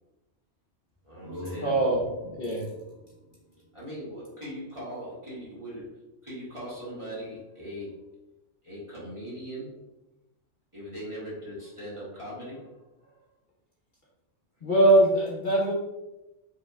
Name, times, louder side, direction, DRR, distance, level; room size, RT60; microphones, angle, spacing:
sound 1, 0.9-4.6, equal, 80° right, 1.8 m, -44 dB
voice 1, 1.0-1.8 3.7-8.2 8.6-9.8 10.7-13.2, equal, 25° right, -8 dB, 1.6 m, -40 dB
voice 2, 1.6-2.0 2.4-2.7 14.6-15.7, right 1 dB, 45° left, -6 dB, 1.0 m, -21 dB
5.2 x 3.2 x 2.4 m, 0.99 s
omnidirectional pair, 1.3 m